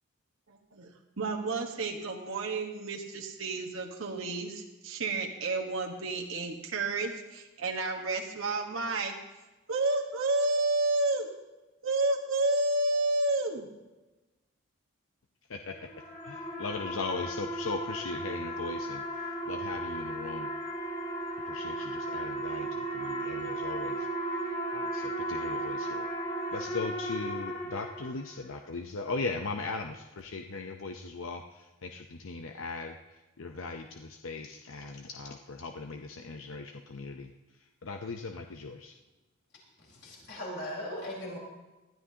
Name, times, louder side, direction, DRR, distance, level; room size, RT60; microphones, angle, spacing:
voice 1, 0.5-0.9 1.2-9.1 9.7-11.3 11.8-13.7, right 2 dB, 75° right, 1 dB, 1.3 m, -30 dB
sound 1, 15.7-28.5, right 1 dB, 40° left, 5.4 m, -35 dB
voice 2, 16.2-20.5 21.5-24.1 24.7-26.1 26.5-33.0 33.4-37.3 37.8-38.9, left 3 dB, 75° left, 4 dB, 0.7 m, -38 dB
voice 3, 39.8-41.4, left 1 dB, 55° left, -3 dB, 4.3 m, -39 dB
19.5 x 12.5 x 2.8 m, 1.1 s
head